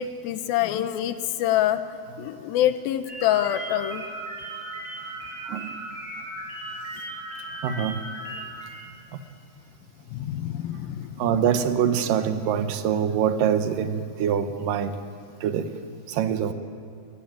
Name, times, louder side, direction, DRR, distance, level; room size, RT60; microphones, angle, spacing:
voice 1, 0.0-1.8 2.2-4.1 10.1-11.4, left 12 dB, 85° left, 11 dB, 2.6 m, -26 dB
sound 1, 3.0-8.8, right 2 dB, 45° right, 7.2 m, -36 dB
voice 2, 7.6-8.0 11.2-15.0 15.4-15.7 16.1-16.5, right 8 dB, 70° right, 9 dB, 2.6 m, -24 dB
20.5 x 20.0 x 9.0 m, 2.4 s
omnidirectional pair, 4.2 m